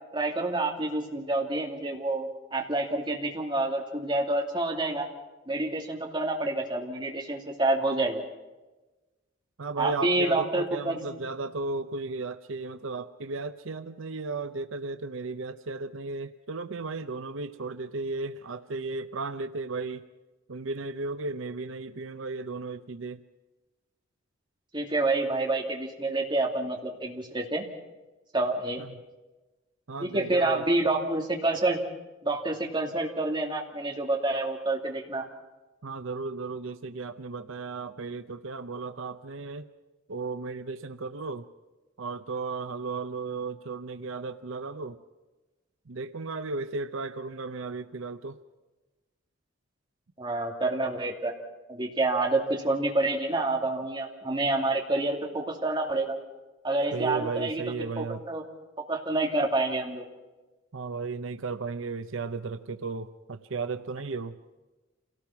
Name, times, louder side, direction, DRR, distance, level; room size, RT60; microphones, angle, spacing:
voice 1, 0.1-5.1 5.5-8.2 9.8-11.0 24.7-27.6 28.3-28.8 30.0-31.8 32.2-35.2 50.2-51.4 51.7-56.1 56.6-58.4 58.9-60.1, right 2 dB, 25° right, 0 dB, 2.6 m, -28 dB
voice 2, 9.6-20.0 20.5-23.2 28.8-29.0 29.9-30.7 35.8-39.7 40.1-41.4 42.0-45.0 45.9-48.4 56.9-58.2 60.7-64.4, right 3 dB, 75° right, 10 dB, 0.7 m, -35 dB
27.5 x 18.0 x 5.9 m, 1.1 s
head